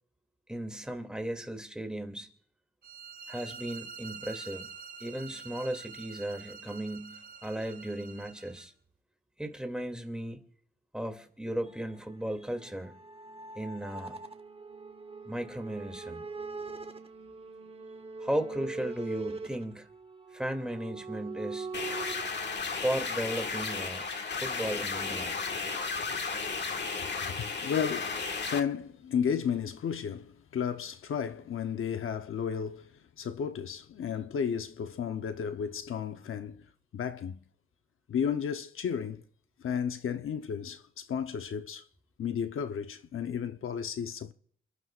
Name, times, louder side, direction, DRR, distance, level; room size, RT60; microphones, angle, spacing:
voice 1, 0.5-2.3 3.3-4.7 5.0-8.7 9.4-10.4 10.9-12.9 13.5-14.2 15.2-16.2 18.2-19.9 20.3-21.7 22.7-24.0 24.3-25.4, right 1 dB, 5° right, 2.6 m, -36 dB
sound 1, 2.8-8.7, right 6 dB, 45° right, 2.3 m, -46 dB
sound 2, 11.7-22.3, right 3 dB, 30° right, 1.1 m, -42 dB
sound 3, 21.7-28.6, left 4 dB, 55° left, 1.7 m, -34 dB
voice 2, 27.1-32.9 33.2-36.6 36.9-37.4 38.1-39.2 39.6-41.8 42.2-44.3, left 7 dB, 80° left, 0.8 m, -33 dB
29.0 x 12.5 x 2.5 m
cardioid pair, 75°, 21 cm